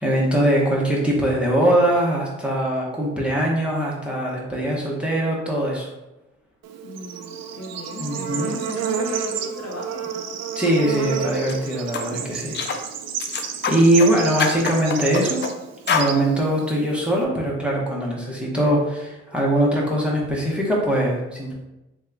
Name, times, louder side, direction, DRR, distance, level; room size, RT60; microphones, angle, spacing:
voice 1, 0.0-5.9 8.0-8.5 10.6-12.6 13.7-15.4 15.9-21.5, right 1 dB, 5° right, -4 dB, 0.9 m, -21 dB
Bird / Insect, 6.6-17.2, right 7 dB, 60° right, 0.4 m, -31 dB
voice 2, 6.8-10.1, left 1 dB, 55° left, 0 dB, 0.8 m, -37 dB
sound 1, 11.3-11.6 11.9-12.1 12.5-12.8 13.2-14.1 14.4-15.5 15.9-16.1, left 5 dB, 40° left, 0.4 m, -25 dB
3.5 x 2.3 x 3.3 m, 0.98 s
cardioid pair, 90°, 30 cm